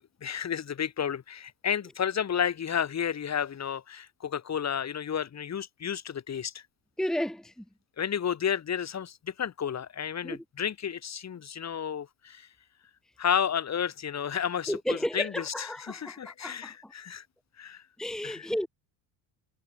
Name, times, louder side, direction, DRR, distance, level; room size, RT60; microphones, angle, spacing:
voice 1, 0.0-6.6 8.0-12.5 13.2-17.2 17.6-17.8 18.2-18.5, left 8 dB, 35° left, 2.7 m, -32 dB
voice 2, 7.0-7.6 10.2-10.4 14.7-16.9 18.0-18.7, left 1 dB, ahead, 1.7 m, -33 dB
cardioid pair, 130°, 45 cm